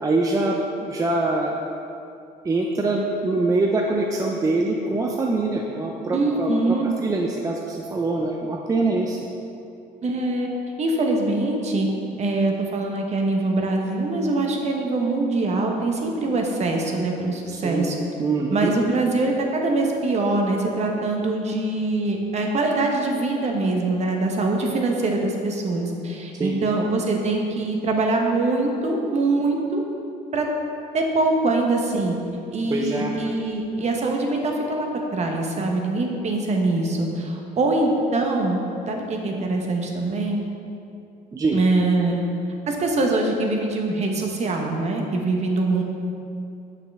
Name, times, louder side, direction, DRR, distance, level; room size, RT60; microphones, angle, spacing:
voice 1, 0.0-1.6 2.4-6.8 7.0-9.2 17.5-17.9 18.2-18.7 26.4-26.6 32.7-33.1 41.3-41.6, right 2 dB, 20° right, 0 dB, 0.4 m, -24 dB
voice 2, 6.1-6.9 10.0-10.5 10.8-11.9 12.2-17.9 18.5-29.8 30.3-30.5 30.9-32.2 32.5-38.6 38.9-40.4 41.5-42.2 42.7-45.8, right 2 dB, 40° right, 1 dB, 0.9 m, -23 dB
6.3 x 5.7 x 3.4 m, 2.7 s
cardioid pair, 110°, 17 cm